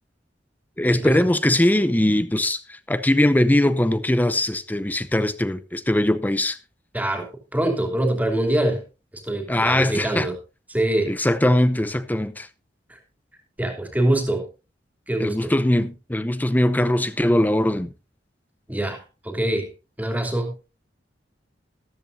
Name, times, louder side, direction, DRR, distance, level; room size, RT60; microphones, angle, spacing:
voice 1, 0.8-6.6 9.5-10.3 11.1-12.5 15.2-17.9, left 1 dB, 10° left, 0.7 m, -21 dB
voice 2, 6.9-8.8 9.1-10.4 10.7-11.1 12.9-13.0 13.6-14.5 15.1-15.5 18.7-19.7 20.0-20.5, right 1 dB, 10° right, 2.9 m, -24 dB
14.0 x 13.5 x 2.6 m
head